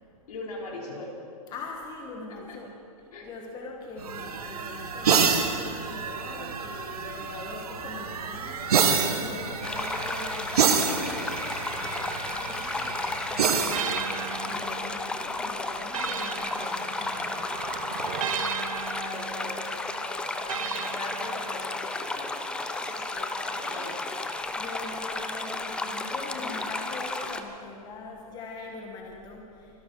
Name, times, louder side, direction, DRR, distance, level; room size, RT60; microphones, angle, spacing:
voice 1, 0.3-1.2 2.5-2.6 3.1-3.3 19.0-24.0, left 2 dB, 75° left, -3 dB, 4.8 m, -41 dB
voice 2, 1.5-2.7 3.2-17.8 24.6-29.8, left 3 dB, 20° left, 0 dB, 1.6 m, -42 dB
sound 1, 4.0-15.1 16.7-18.3, right 6 dB, 75° right, 1.7 m, -29 dB
sound 2, 9.6-27.4, left 2 dB, 5° left, 0.5 m, -33 dB
sound 3, 13.7-17.4 18.2-21.9, right 8 dB, 60° right, 1.0 m, -37 dB
24.5 x 11.5 x 4.7 m, 2.5 s
hypercardioid pair, 145°, 19 cm